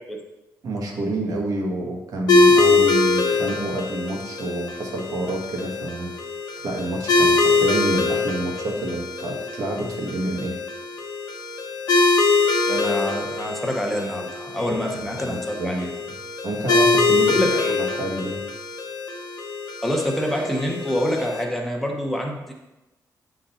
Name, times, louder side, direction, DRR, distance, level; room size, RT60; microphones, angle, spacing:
voice 1, 0.6-6.1 6.6-10.6 15.2-16.1 16.4-18.4, right 1 dB, 65° right, 0 dB, 1.3 m, -28 dB
sound 1, 2.3-21.4, left 3 dB, 90° left, 0.8 m, -23 dB
voice 2, 12.7-15.9 17.2-17.8 19.8-22.5, left 1 dB, ahead, 0 dB, 0.9 m, -26 dB
8.3 x 3.8 x 4.2 m, 1.0 s
wide cardioid pair, 155°, 6 cm